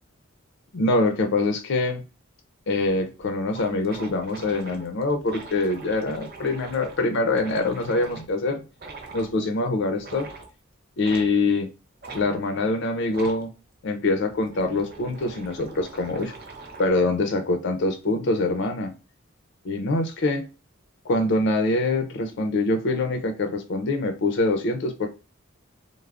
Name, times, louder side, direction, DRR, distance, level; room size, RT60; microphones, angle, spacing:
voice 1, 0.7-2.0 2.7-8.6 9.1-10.3 11.0-11.7 12.1-13.5 13.8-16.3 16.8-18.9 19.6-20.5 21.1-25.1, left 2 dB, 60° left, 0.5 m, -24 dB
sound 1, 2.8-2.9 3.2-3.3 3.5-8.3 8.8-9.3 10.0-10.5 11.0-11.3 12.0-12.2 13.1-13.4 14.2-17.0, right 3 dB, 50° right, 0.6 m, -42 dB
3.3 x 2.0 x 2.3 m
head